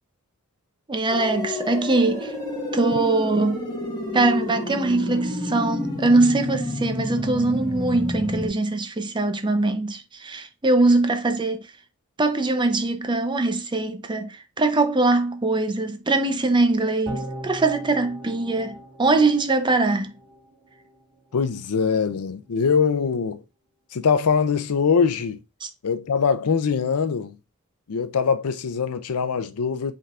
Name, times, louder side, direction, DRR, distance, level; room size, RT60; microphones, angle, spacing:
voice 1, 0.9-2.3 2.7-3.6 4.1-11.7 12.2-20.1 25.6-25.7, right 2 dB, 20° right, 0.6 m, -22 dB
sound 1, 1.1-8.5, left 1 dB, 20° left, 1.2 m, -29 dB
sound 2, 17.1-20.4 20.8-20.9, right 1 dB, 45° right, 1.5 m, -38 dB
voice 2, 21.3-23.4 23.9-25.4 25.8-27.4 27.9-29.9, left 6 dB, 85° left, 0.5 m, -22 dB
5.4 x 3.6 x 2.4 m
head